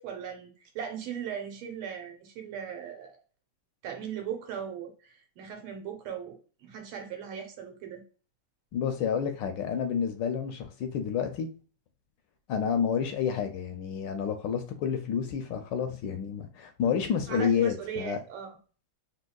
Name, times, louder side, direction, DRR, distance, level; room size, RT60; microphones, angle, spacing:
voice 1, 0.0-3.2 3.8-8.0 17.3-18.6, right 8 dB, 80° right, 4 dB, 1.5 m, -38 dB
voice 2, 8.7-11.5 12.5-18.2, left 7 dB, 75° left, 7 dB, 1.0 m, -29 dB
3.6 x 2.8 x 2.2 m, 0.37 s
omnidirectional pair, 2.3 m